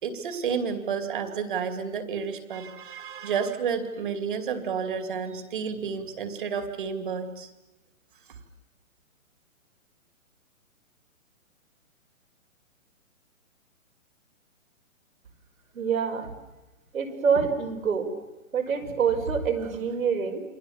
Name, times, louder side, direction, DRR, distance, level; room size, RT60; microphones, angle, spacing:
voice 1, 0.0-7.5 8.3-8.4, right 6 dB, 35° right, 9 dB, 2.7 m, -31 dB
voice 2, 15.7-16.3 16.9-18.1 18.5-20.4, right 6 dB, 75° right, 5 dB, 5.7 m, -26 dB
28.5 x 24.0 x 7.3 m, 1.0 s
hypercardioid pair, 180°, 41 cm